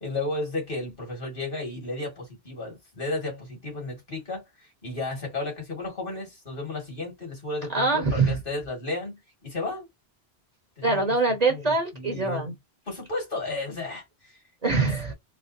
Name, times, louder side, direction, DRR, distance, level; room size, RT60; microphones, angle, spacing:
voice 1, 0.0-9.9 10.8-11.0 11.5-12.5 12.9-14.4, left 2 dB, 55° left, 2.4 m, -33 dB
voice 2, 7.7-8.4 10.8-12.5 14.6-15.1, right 3 dB, 40° right, 1.3 m, -24 dB
4.2 x 2.4 x 2.7 m
omnidirectional pair, 1.1 m